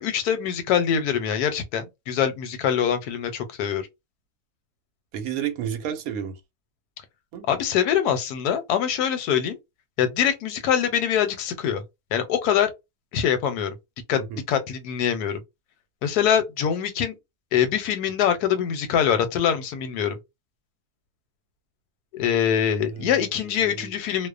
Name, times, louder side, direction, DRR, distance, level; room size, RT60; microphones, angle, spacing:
voice 1, 0.0-3.9 7.5-9.6 10.0-11.8 12.1-12.7 13.1-13.7 14.1-15.4 16.0-17.2 17.5-20.2 22.1-24.3, left 8 dB, 85° left, 1.1 m, -24 dB
voice 2, 5.1-6.4 7.3-7.4 14.1-14.4 22.9-23.2 23.6-23.9, right 9 dB, 75° right, 1.0 m, -31 dB
2.6 x 2.1 x 2.4 m
omnidirectional pair, 1.6 m